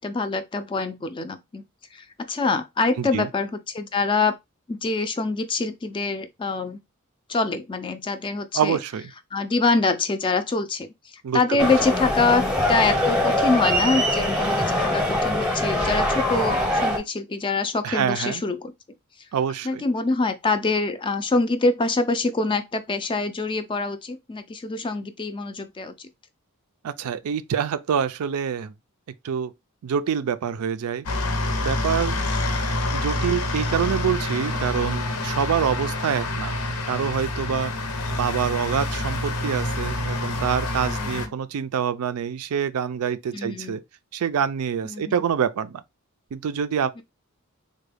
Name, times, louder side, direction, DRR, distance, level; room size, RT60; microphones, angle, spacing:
voice 1, 0.0-1.6 1.9-4.4 4.7-6.8 7.3-8.8 9.3-18.7 19.6-26.1 40.9-41.3 43.3-43.8 44.8-45.2 47.0-47.1, left 3 dB, 20° left, 0.3 m, -25 dB
voice 2, 8.5-9.1 11.2-11.7 17.8-18.4 19.3-19.8 26.8-28.7 29.2-29.5 29.8-31.1 31.6-32.2 32.9-36.6 36.9-37.7 38.1-43.8 44.1-45.8 46.3-47.0, right 7 dB, 80° right, 0.4 m, -26 dB
sound 1, 11.6-17.0, left 1 dB, 5° right, 0.7 m, -23 dB
sound 2, 31.1-41.3, left 1 dB, 85° left, 0.7 m, -27 dB
3.6 x 2.2 x 3.3 m
head